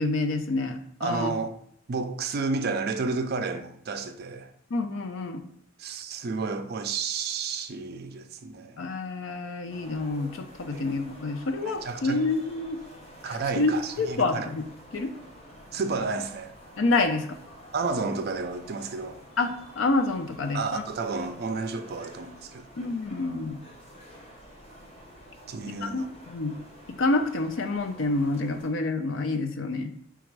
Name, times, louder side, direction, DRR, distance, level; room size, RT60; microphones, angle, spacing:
voice 1, 0.0-1.3 4.7-5.5 8.8-12.8 13.6-13.7 14.0-14.6 14.9-15.1 16.8-17.3 19.4-20.8 22.8-23.6 25.8-26.6 27.0-29.9, left 3 dB, 70° left, 0.5 m, -28 dB
voice 2, 1.0-1.5 1.9-4.5 5.8-8.9 10.7-10.9 11.6-12.2 13.2-14.5 15.7-16.5 17.7-19.2 20.5-22.7 25.5-26.1, right 4 dB, 50° right, 0.4 m, -31 dB
sound 1, 9.7-28.7, equal, 30° left, 0.9 m, -49 dB
4.0 x 2.4 x 4.6 m
head